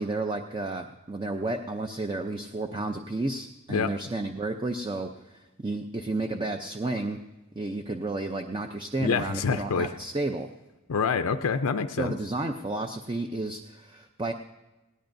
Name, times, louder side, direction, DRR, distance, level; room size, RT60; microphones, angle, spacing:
voice 1, 0.0-7.2 7.6-10.5 12.0-14.3, right 2 dB, 20° right, 5 dB, 0.5 m, -32 dB
voice 2, 9.0-9.9 10.9-12.1, left 5 dB, 80° left, 8 dB, 0.5 m, -26 dB
19.0 x 17.5 x 2.6 m, 1.1 s
head